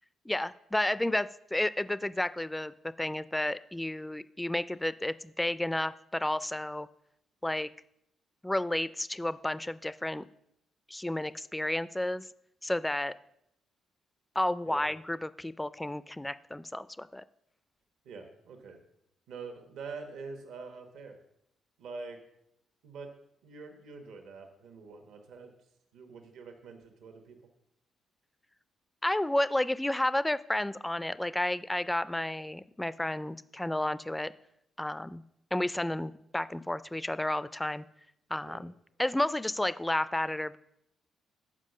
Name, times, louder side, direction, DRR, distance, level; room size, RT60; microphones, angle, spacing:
voice 1, 0.3-6.9 7.4-7.7 8.4-10.2 10.9-12.2 12.6-13.1 14.4-17.2 29.0-34.3 34.8-35.2 35.5-37.8 38.3-38.7 39.0-40.6, left 1 dB, 10° left, 15 dB, 0.3 m, -31 dB
voice 2, 18.0-18.8 19.3-21.2 21.8-22.2 22.8-23.1 23.4-25.5 25.9-27.4 38.4-38.6, right 4 dB, 80° right, 5 dB, 1.2 m, -45 dB
7.4 x 4.9 x 6.5 m, 0.79 s
cardioid pair, 90°, 0 cm